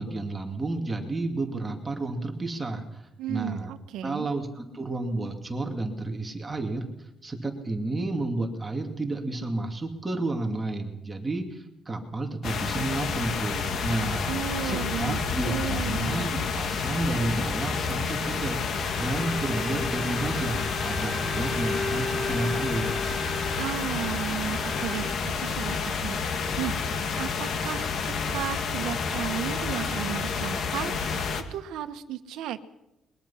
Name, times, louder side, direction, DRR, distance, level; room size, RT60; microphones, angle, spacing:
voice 1, 0.0-3.7 4.0-14.3 14.6-22.9, right 2 dB, 15° right, 3 dB, 2.5 m, -31 dB
voice 2, 3.2-4.3 14.3-15.2 15.4-16.3 23.6-32.6, right 11 dB, 90° right, 9 dB, 1.3 m, -35 dB
sound 1, 12.4-31.4, left 5 dB, 55° left, 2.1 m, -29 dB
Bowed string instrument, 18.7-25.3, left 2 dB, 15° left, 5.2 m, -36 dB
22.0 x 21.5 x 5.8 m, 0.91 s
cardioid pair, 130°, 0 cm